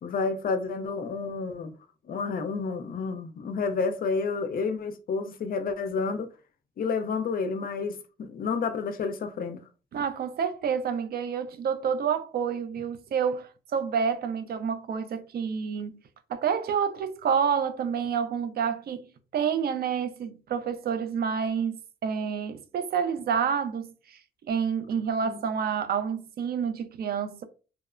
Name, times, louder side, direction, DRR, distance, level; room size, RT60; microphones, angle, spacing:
voice 1, 0.0-1.7 2.1-6.3 6.8-9.6 25.2-25.4, left 4 dB, 45° left, 0.4 m, -30 dB
voice 2, 9.9-16.0 16.3-19.0 19.3-24.2 24.5-27.4, right 7 dB, 50° right, 0.4 m, -28 dB
2.8 x 2.0 x 2.4 m
cardioid pair, 90°, 20 cm